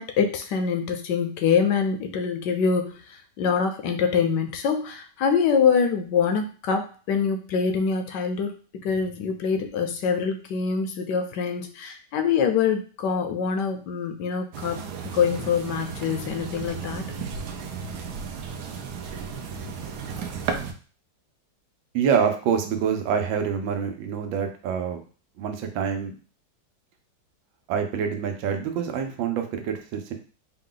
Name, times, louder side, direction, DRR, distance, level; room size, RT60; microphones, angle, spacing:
voice 1, 0.0-17.1, left 6 dB, 75° left, 6 dB, 1.1 m, -25 dB
sound 1, 14.5-20.7, right 6 dB, 70° right, 1.0 m, -34 dB
voice 2, 21.9-25.0 25.4-26.1 27.7-30.1, right 7 dB, 85° right, 5 dB, 1.4 m, -26 dB
4.6 x 2.3 x 3.7 m, 0.38 s
omnidirectional pair, 2.0 m